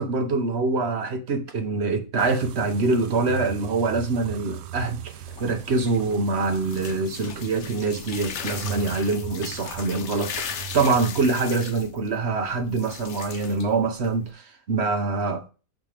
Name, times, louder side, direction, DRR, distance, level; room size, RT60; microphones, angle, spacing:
voice 1, 0.0-15.4, right 3 dB, 50° right, 1.1 m, -25 dB
sound 1, 2.2-11.3, right 10 dB, 85° right, 1.1 m, -39 dB
sound 2, 5.1-14.3, left 7 dB, 60° left, 1.0 m, -38 dB
8.8 x 5.9 x 3.4 m
omnidirectional pair, 1.5 m